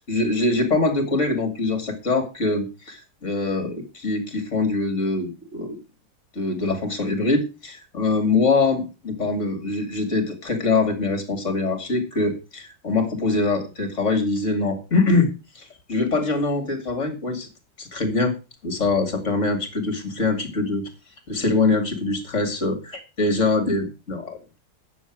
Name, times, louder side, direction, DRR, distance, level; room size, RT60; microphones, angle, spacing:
voice 1, 0.1-5.8 6.3-15.3 15.5-17.5 17.8-18.3 18.6-20.9 21.3-22.7 23.2-24.6, left 3 dB, 40° left, 8 dB, 2.8 m, -23 dB
10.0 x 7.2 x 6.1 m, 0.29 s
omnidirectional pair, 2.0 m